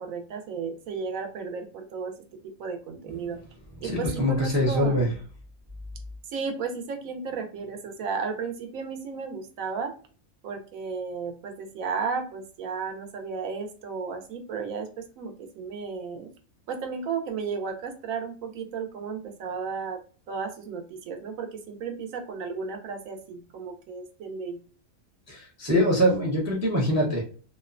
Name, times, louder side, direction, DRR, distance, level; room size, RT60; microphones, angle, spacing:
voice 1, 0.0-2.1 2.6-3.4 3.8-5.0 6.3-9.9 10.4-14.9 15.2-16.3 16.7-20.0 20.3-24.6, right 5 dB, 75° right, 5 dB, 1.0 m, -34 dB
voice 2, 3.8-5.1 25.3-27.2, equal, 25° right, -1 dB, 0.3 m, -23 dB
2.8 x 2.1 x 2.4 m, 0.40 s
omnidirectional pair, 1.5 m